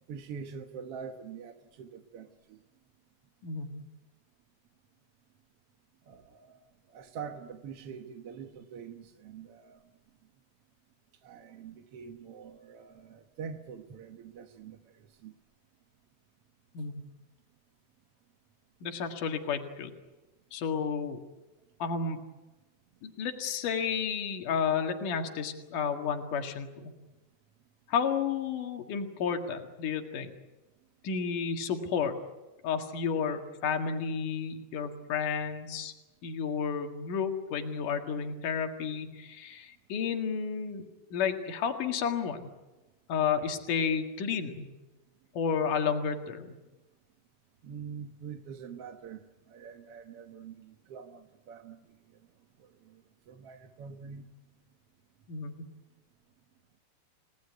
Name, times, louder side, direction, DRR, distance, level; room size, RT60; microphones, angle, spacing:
voice 1, 0.1-2.6 6.1-6.6 6.9-9.8 11.2-15.3 47.6-49.2 49.5-51.9 52.6-53.0 53.3-54.4, right 6 dB, 60° right, 5 dB, 1.8 m, -45 dB
voice 2, 3.4-3.8 16.8-17.0 18.8-19.9 20.5-21.2 21.8-22.2 23.0-26.9 27.9-30.3 31.0-32.2 32.6-35.9 36.2-40.9 41.1-42.5 43.1-44.7 45.3-46.5 55.3-55.6, left 6 dB, 75° left, 4 dB, 3.5 m, -31 dB
29.5 x 18.5 x 9.5 m, 1.1 s
omnidirectional pair, 3.8 m